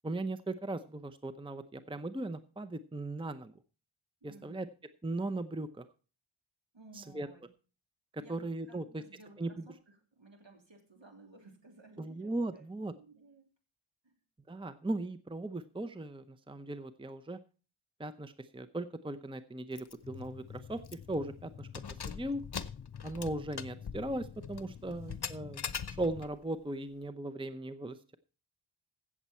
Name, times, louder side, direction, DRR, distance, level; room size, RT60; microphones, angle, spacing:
voice 1, 0.0-3.5 4.2-4.7 5.0-5.9 7.1-7.3 8.1-9.0 9.4-9.6 12.0-12.9 14.5-17.4 18.0-21.7 22.1-22.4 23.0-25.6 25.9-28.1, right 2 dB, 10° right, 12 dB, 0.7 m, -38 dB
voice 2, 4.2-4.7 6.7-7.5 8.2-13.5 14.0-14.2 25.0-25.3, right 2 dB, 60° right, 3 dB, 3.4 m, -57 dB
Keys jangling, 19.8-20.0 20.3-20.4 20.8-21.2 21.6-26.4, left 6 dB, 50° left, 0.9 m, -42 dB
sound 1, 20.0-26.3, left 8 dB, 35° left, 0.5 m, -49 dB
15.5 x 7.5 x 4.4 m, 0.35 s
cardioid pair, 40°, 49 cm